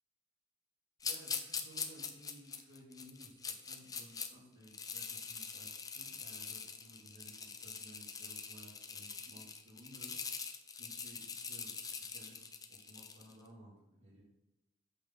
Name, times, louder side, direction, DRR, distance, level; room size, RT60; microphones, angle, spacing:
sound 1, 1.0-4.3 4.6-13.3, left 5 dB, 20° left, 0.6 m, -43 dB
voice 1, 1.0-10.2 10.7-11.7 12.1-14.2, right 1 dB, 90° right, -8 dB, 2.4 m, -57 dB
8.2 x 6.3 x 3.8 m, 0.96 s
head